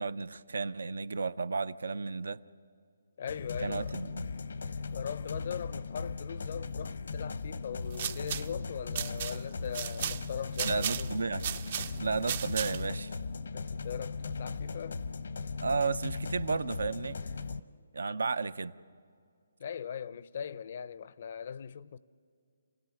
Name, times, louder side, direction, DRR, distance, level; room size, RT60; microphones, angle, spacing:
voice 1, 0.0-2.4 3.6-4.1 10.6-11.4 12.0-13.2 15.6-17.2 17.9-18.7, right 4 dB, 80° right, 0.6 m, -33 dB
voice 2, 3.2-4.1 4.9-11.2 13.5-15.0 19.6-22.0, left 8 dB, 45° left, 0.5 m, -40 dB
sound 1, 3.3-17.6, left 4 dB, 75° left, 0.8 m, -38 dB
sound 2, 7.7-13.0, right 9 dB, 40° right, 0.5 m, -37 dB
28.0 x 16.5 x 7.1 m
hypercardioid pair, 165°, 0 cm